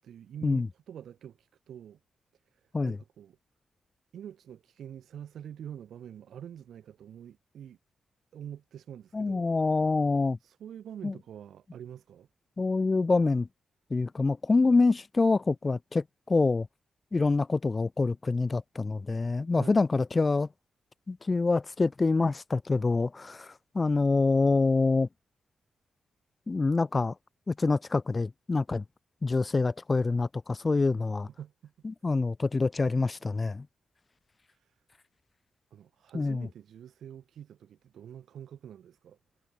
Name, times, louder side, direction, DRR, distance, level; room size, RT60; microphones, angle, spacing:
voice 1, 0.0-2.0 2.5-3.4 4.1-7.8 8.3-9.5 10.4-12.3 19.5-19.9 31.0-31.7 34.5-34.8 35.7-39.2, right 9 dB, 75° right, 7.2 m, -46 dB
voice 2, 9.1-10.4 11.0-11.1 12.6-13.5 13.9-16.7 17.1-20.5 21.1-25.1 26.5-27.1 27.5-28.8 29.2-31.3 31.8-33.7 36.1-36.5, left 3 dB, 20° left, 0.4 m, -26 dB
wide cardioid pair, 175°, 0 cm